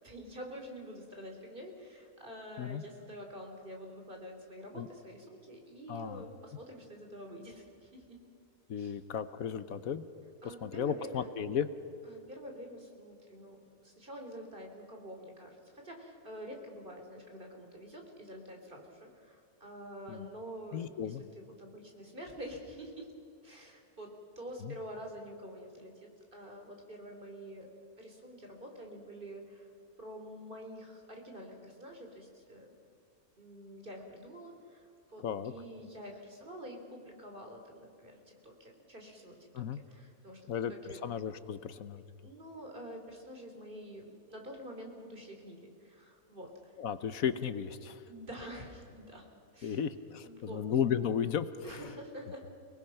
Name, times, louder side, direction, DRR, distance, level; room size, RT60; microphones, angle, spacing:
voice 1, 0.0-8.2 8.8-9.0 10.4-11.3 12.0-23.1 23.4-27.7 28.0-29.7 30.0-32.7 33.4-41.0 42.2-46.7 48.1-49.2 49.5-49.8 50.2-50.6 51.6-52.4, equal, 35° right, 2 dB, 3.5 m, -47 dB
voice 2, 5.9-6.2 8.7-10.0 10.4-11.7 20.1-20.3 20.7-21.2 24.6-24.8 35.2-35.5 39.5-39.8 40.5-42.0 46.8-48.0 49.6-51.9, left 8 dB, 65° left, 12 dB, 1.3 m, -34 dB
29.5 x 19.5 x 5.8 m, 2.5 s
omnidirectional pair, 1.6 m